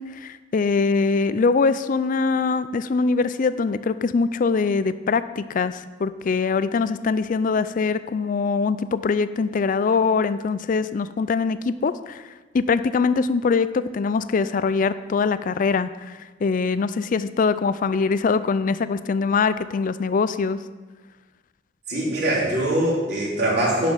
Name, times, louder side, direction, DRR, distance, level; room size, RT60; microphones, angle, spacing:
voice 1, 0.0-12.3 12.5-20.6, left 4 dB, 45° left, 14 dB, 0.4 m, -23 dB
voice 2, 21.9-23.9, right 1 dB, 60° right, -6 dB, 3.5 m, -22 dB
10.5 x 5.0 x 5.7 m, 1.3 s
head